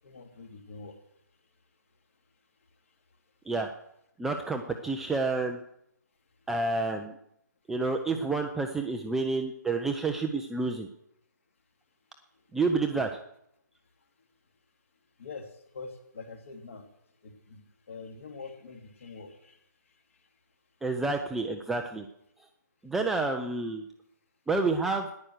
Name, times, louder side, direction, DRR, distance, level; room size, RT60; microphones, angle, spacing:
voice 1, 0.0-1.0 1.4-1.5 2.6-3.2 6.4-6.5 12.3-12.4 12.9-13.0 13.9-14.3 15.2-20.4, left 4 dB, 45° left, 5 dB, 2.8 m, -46 dB
voice 2, 4.2-5.6 6.5-7.1 7.7-10.9 12.5-13.1 20.8-22.1 22.8-23.8 24.5-25.1, right 3 dB, 5° right, 3 dB, 0.4 m, -29 dB
14.0 x 10.5 x 6.5 m, 0.76 s
figure-of-eight pair, 140°, 10 cm